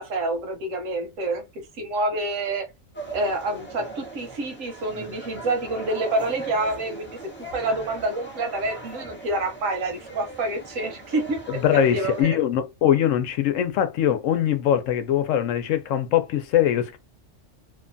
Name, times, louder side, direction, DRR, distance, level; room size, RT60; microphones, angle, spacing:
voice 1, 0.0-1.4 1.8-2.7 3.1-7.2 7.5-11.6 11.9-12.4, right 2 dB, 80° right, 1.2 m, -27 dB
sound 1, 2.9-12.2, right 2 dB, 15° left, 0.4 m, -39 dB
voice 2, 11.5-17.0, left 10 dB, 80° left, 0.9 m, -22 dB
2.8 x 2.2 x 2.5 m
omnidirectional pair, 1.3 m